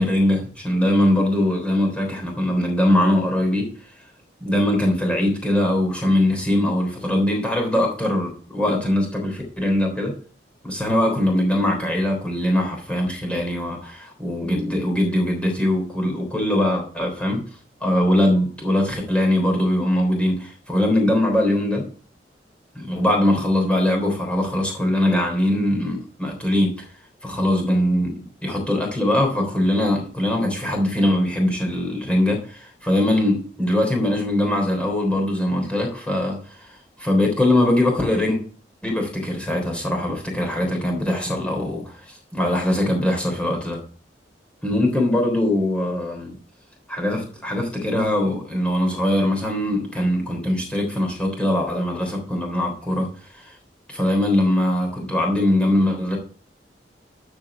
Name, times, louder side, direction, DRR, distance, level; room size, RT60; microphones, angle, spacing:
voice 1, 0.0-3.7 4.4-10.1 10.6-17.4 17.8-21.9 22.7-26.8 27.2-38.4 38.8-43.8 44.6-46.4 46.9-53.1 53.3-53.5 53.9-56.2, left 1 dB, 5° left, 0 dB, 3.4 m, -21 dB
13.0 x 5.0 x 5.0 m, 0.42 s
head